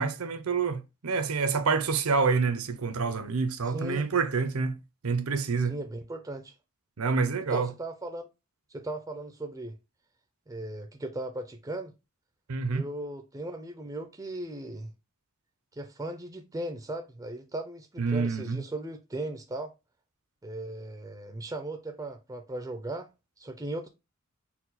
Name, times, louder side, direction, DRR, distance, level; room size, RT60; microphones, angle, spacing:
voice 1, 0.0-4.8 5.0-5.8 7.0-7.7 12.5-12.9 18.0-18.6, right 4 dB, 80° right, 0.7 m, -27 dB
voice 2, 3.6-4.1 5.6-6.5 7.5-8.3 8.7-9.8 10.5-11.9 12.7-14.9 15.7-19.7 20.4-23.1 23.4-23.9, right 1 dB, 15° right, 0.4 m, -37 dB
4.3 x 2.2 x 4.0 m
head